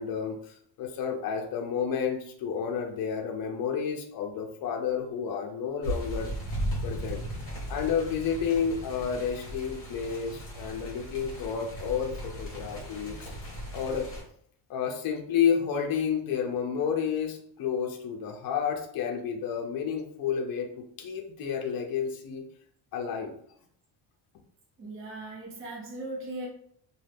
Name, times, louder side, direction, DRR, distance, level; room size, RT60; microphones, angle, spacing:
voice 1, 0.0-6.3 6.8-7.2 7.7-13.3 13.7-14.1 14.7-22.4 22.9-23.3, left 7 dB, 50° left, 2 dB, 0.6 m, -30 dB
sound 1, 5.8-14.2, equal, 30° left, 1.2 m, -37 dB
voice 2, 24.8-26.5, right 2 dB, 30° right, -4 dB, 0.7 m, -38 dB
2.6 x 2.3 x 3.3 m, 0.64 s
cardioid pair, 145°, 46 cm